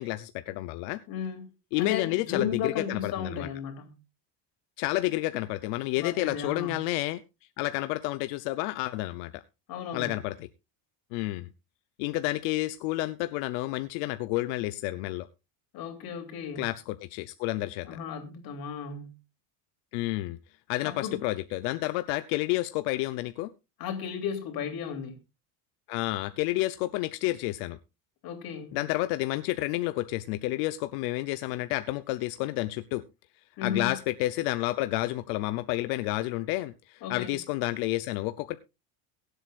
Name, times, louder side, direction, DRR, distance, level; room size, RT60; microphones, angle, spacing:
voice 1, 0.0-1.0 1.7-3.5 4.8-7.2 7.6-9.4 9.9-10.5 11.1-11.5 12.0-15.3 16.6-17.9 19.9-20.4 20.7-23.5 25.9-27.8 28.7-33.0 33.6-38.6, left 18 dB, 80° left, 11 dB, 0.8 m, -30 dB
voice 2, 1.1-1.5 1.8-4.0 6.0-6.8 9.7-10.1 15.7-16.6 17.8-19.2 20.8-21.2 23.8-25.2 28.2-28.8 33.6-34.0 37.0-37.4, left 7 dB, 50° left, 4 dB, 3.1 m, -34 dB
23.0 x 8.1 x 2.4 m, 0.26 s
cardioid pair, 140°, 45 cm